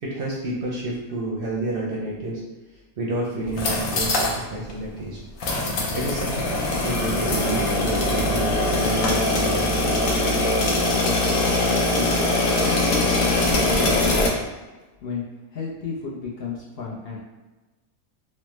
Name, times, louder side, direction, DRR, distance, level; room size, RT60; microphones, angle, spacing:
voice 1, 0.0-2.4 3.0-5.2 5.9-10.0, right 2 dB, 60° right, -4 dB, 0.6 m, -30 dB
sound 1, 3.4-4.4 4.7-4.8 5.4-14.3, left 2 dB, 80° left, 1.0 m, -22 dB
voice 2, 10.8-11.2 11.5-14.5 15.0-15.2 15.5-17.2, left 5 dB, 60° left, -4 dB, 0.7 m, -34 dB
3.2 x 2.0 x 3.0 m, 1.2 s
omnidirectional pair, 1.3 m